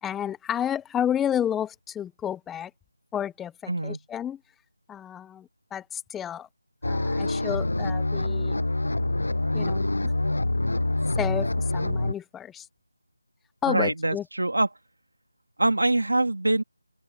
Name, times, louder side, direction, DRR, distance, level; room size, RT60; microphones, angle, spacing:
voice 1, 0.0-2.7 3.1-4.4 4.9-6.5 6.9-8.5 9.5-10.1 11.2-12.7 13.6-14.2, left 9 dB, 5° left, 0.8 m, -31 dB
voice 2, 3.7-4.0 13.7-14.7 15.6-16.6, right 2 dB, 80° right, 2.7 m, -24 dB
sound 1, 6.8-12.1, left 2 dB, 80° left, 7.6 m, -26 dB
figure-of-eight pair, 165°, 0 cm